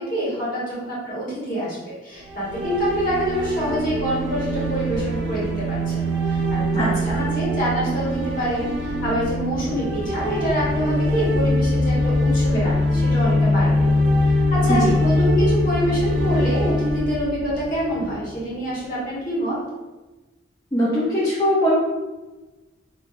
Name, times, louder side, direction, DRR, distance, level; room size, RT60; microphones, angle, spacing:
voice 1, 0.0-13.9 14.2-19.6, equal, 45° left, -8 dB, 1.2 m, -26 dB
sound 1, 2.2-18.3, left 1 dB, 60° right, 0.5 m, -23 dB
voice 2, 6.8-7.2 14.7-14.9 20.7-21.7, equal, 15° left, -9 dB, 0.5 m, -21 dB
3.3 x 2.3 x 2.4 m, 1.2 s
head